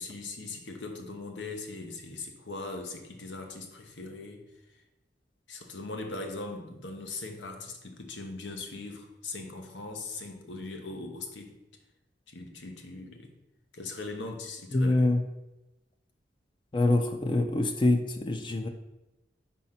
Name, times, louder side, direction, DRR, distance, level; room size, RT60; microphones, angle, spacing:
voice 1, 0.0-4.4 5.5-11.5 12.3-13.3 13.7-14.9, left 3 dB, 90° left, 3 dB, 1.1 m, -40 dB
voice 2, 14.7-15.2 16.7-18.7, left 2 dB, 25° left, 5 dB, 0.4 m, -25 dB
5.0 x 4.1 x 5.7 m, 0.98 s
head